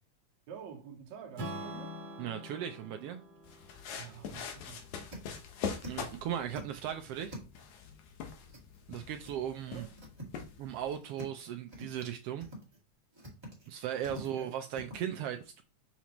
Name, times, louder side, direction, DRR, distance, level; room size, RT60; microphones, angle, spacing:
voice 1, 0.5-1.9 4.0-4.9 9.4-10.0 14.2-14.5, right 7 dB, 70° right, 2.2 m, -48 dB
Strum, 1.4-5.6, equal, 35° right, 1.9 m, -45 dB
voice 2, 2.2-3.2 5.8-7.4 8.9-9.8 10.6-12.5 13.7-15.6, right 10 dB, 90° right, 1.3 m, -37 dB
sound 1, 3.2-3.4 3.8-3.9 4.3-4.4 4.7-6.1 6.4-7.8 8.5-9.0 9.2-9.3 9.7-10.5 10.8-11.4 11.7-12.1 12.4-12.8 13.1-15.0, equal, 10° right, 1.6 m, -47 dB
sound 2, 3.4-10.9, left 6 dB, 85° left, 2.5 m, -43 dB
6.0 x 5.9 x 3.0 m
omnidirectional pair, 3.3 m